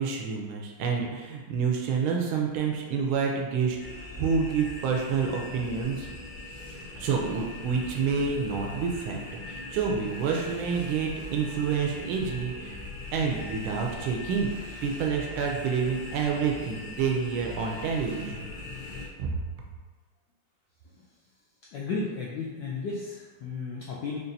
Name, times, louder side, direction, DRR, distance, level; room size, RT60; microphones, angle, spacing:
voice 1, 0.0-3.8 4.2-6.1 6.9-9.2 9.5-12.8 13.1-14.5 14.8-18.5 19.2-19.4, right 5 dB, 75° right, 0 dB, 1.3 m, -28 dB
sound 1, 3.8-19.1, left 2 dB, 60° left, 1.3 m, -40 dB
voice 2, 21.7-24.2, left 4 dB, 80° left, -4 dB, 1.0 m, -33 dB
5.1 x 2.5 x 2.6 m, 1.4 s
omnidirectional pair, 2.4 m